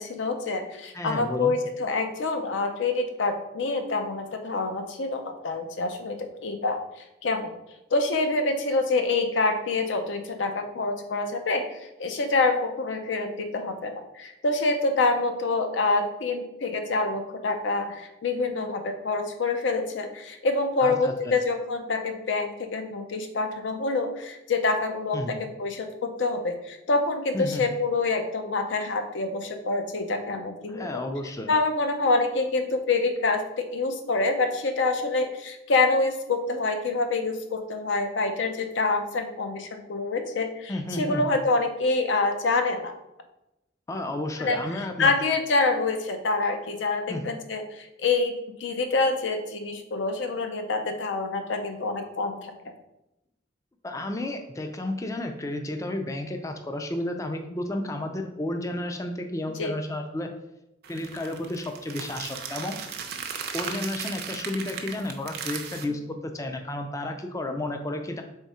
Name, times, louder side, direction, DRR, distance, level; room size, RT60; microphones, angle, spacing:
voice 1, 0.0-6.8 7.2-7.5 7.9-11.7 12.0-30.9 31.5-42.9 44.4-48.3 48.6-52.7 59.6-59.7, left 3 dB, 75° left, 6 dB, 0.6 m, -26 dB
voice 2, 0.9-1.5 20.8-21.3 25.1-25.4 27.3-27.6 30.7-31.5 40.7-41.4 43.9-45.1 47.1-47.2 53.8-60.3 60.9-62.7 63.5-68.2, left 1 dB, 15° left, 5 dB, 0.3 m, -32 dB
sound 1, 60.8-65.8, right 6 dB, 55° right, 0.5 m, -36 dB
3.6 x 3.5 x 4.1 m, 0.91 s
head